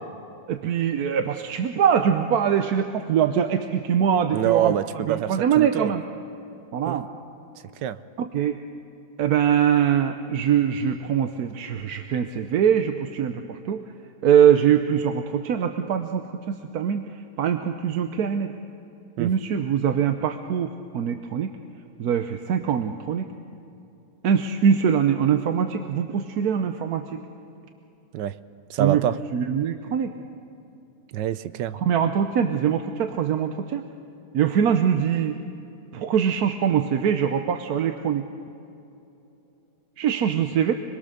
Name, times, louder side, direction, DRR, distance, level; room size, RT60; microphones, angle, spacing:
voice 1, 0.5-4.7 5.1-6.0 6.7-7.1 8.2-8.6 9.2-13.8 14.2-18.5 19.2-21.5 22.0-23.3 24.2-27.2 28.8-29.0 29.3-30.1 31.8-33.8 34.3-35.4 35.9-38.2 40.0-40.7, right 8 dB, 65° right, 7 dB, 1.2 m, -23 dB
voice 2, 4.3-5.9 6.9-7.0 7.8-8.0 19.2-19.3 28.1-28.4 28.7-29.2 31.1-31.8, right 11 dB, 90° right, 14 dB, 1.4 m, -25 dB
26.5 x 21.0 x 6.7 m, 2.8 s
omnidirectional pair, 1.9 m